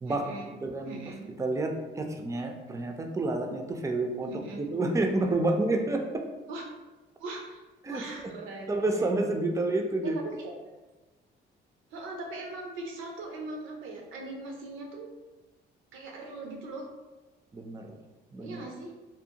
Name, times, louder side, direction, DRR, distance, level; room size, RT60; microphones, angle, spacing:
voice 1, 0.0-0.5 0.8-1.2 4.2-4.6 6.5-6.6 7.2-7.6 7.9-9.1 10.0-10.7 11.9-15.1 15.9-16.9 18.4-18.9, right 2 dB, 85° right, 1 dB, 0.6 m, -40 dB
voice 2, 0.6-1.0 1.4-4.3 4.7-6.2 7.8-8.3 8.7-10.2 17.5-17.9 18.3-18.6, right 2 dB, 15° right, 3 dB, 0.3 m, -29 dB
2.6 x 2.0 x 2.8 m, 1.2 s
cardioid pair, 90°, 20 cm